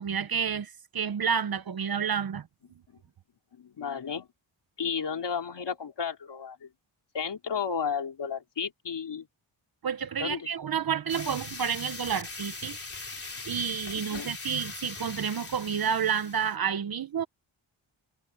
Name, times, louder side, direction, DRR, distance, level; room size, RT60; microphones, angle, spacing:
voice 1, 0.0-2.5 9.8-12.8 13.4-17.2, right 7 dB, 45° right, 0.7 m, -30 dB
voice 2, 3.6-4.3 4.8-6.7 7.1-9.3 10.2-10.5 14.1-14.3, left 6 dB, 55° left, 3.2 m, -33 dB
sound 1, 11.1-16.5, left 3 dB, 25° left, 3.3 m, -41 dB
wide cardioid pair, 175°, 49 cm